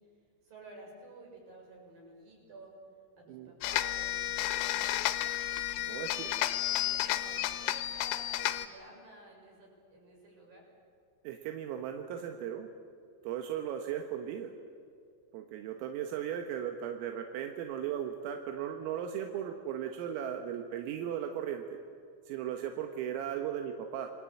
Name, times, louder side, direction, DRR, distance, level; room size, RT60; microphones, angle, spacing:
voice 1, 0.4-2.8 3.2-5.0 5.7-10.7, right 2 dB, 45° right, 0 dB, 8.1 m, -53 dB
sound 1, 3.6-8.7, left 14 dB, 80° left, 3.6 m, -32 dB
voice 2, 5.8-6.3 11.3-12.7 13.2-14.5 15.3-21.8 22.3-24.1, right 9 dB, 80° right, 4 dB, 4.0 m, -37 dB
28.5 x 22.0 x 8.6 m, 2.4 s
omnidirectional pair, 6.0 m